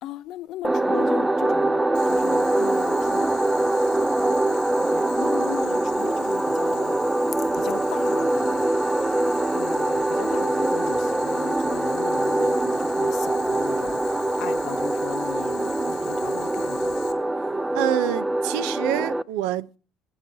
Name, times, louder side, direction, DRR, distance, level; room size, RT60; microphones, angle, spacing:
voice 1, 0.0-3.3 4.9-6.9 7.5-8.8 9.5-16.9, left 13 dB, 70° left, 0.7 m, -37 dB
sound 1, 0.6-19.2, right 2 dB, 10° right, 0.4 m, -23 dB
Boiling, 1.9-17.1, left 13 dB, 90° left, 1.4 m, -44 dB
voice 2, 17.7-19.8, right 13 dB, 85° right, 0.4 m, -27 dB
23.0 x 7.8 x 2.7 m
supercardioid pair, 95°, 0 cm